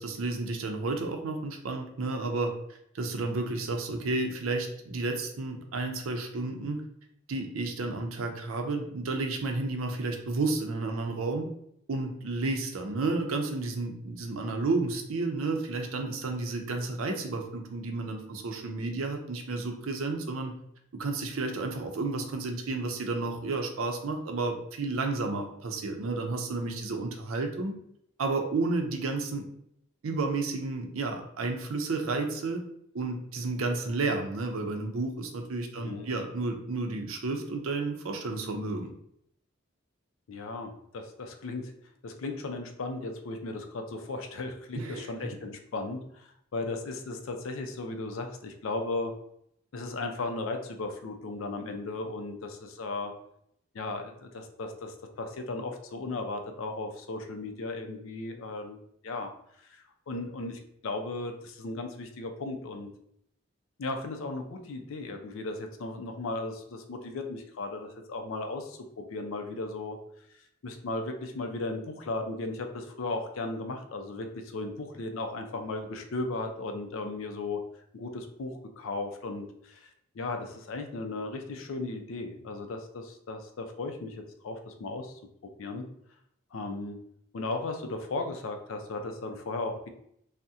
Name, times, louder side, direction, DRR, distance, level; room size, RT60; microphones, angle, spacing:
voice 1, 0.0-2.5 2.9-6.8 7.3-11.5 11.9-20.5 20.9-27.7 28.2-29.4 30.0-32.6 32.9-38.9 44.7-45.3, right 3 dB, 80° right, 4 dB, 0.5 m, -31 dB
voice 2, 35.8-36.1 40.3-41.7 42.0-49.1 49.7-53.1 53.7-59.3 59.6-62.9 63.8-70.0 70.6-77.6 77.9-85.8 86.5-87.0 87.3-89.9, left 2 dB, 70° left, 5 dB, 0.4 m, -36 dB
2.7 x 2.1 x 3.5 m, 0.72 s
head